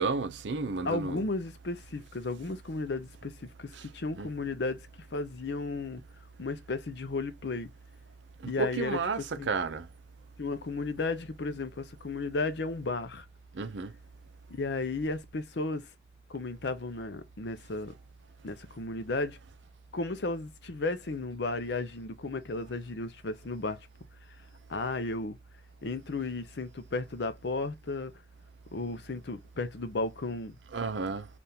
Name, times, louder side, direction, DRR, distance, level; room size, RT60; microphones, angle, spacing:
voice 1, 0.0-1.2 4.2-4.3 8.6-9.2 9.5-9.9 13.5-13.9 30.7-31.3, right 4 dB, 80° right, 0.6 m, -31 dB
voice 2, 0.8-6.0 6.4-7.7 8.5-9.5 10.4-13.3 14.5-15.9 16.3-17.9 18.4-19.4 19.9-23.9 24.7-25.4 25.8-28.1 28.7-30.6, left 3 dB, 70° left, 0.6 m, -34 dB
3.5 x 2.5 x 2.7 m
head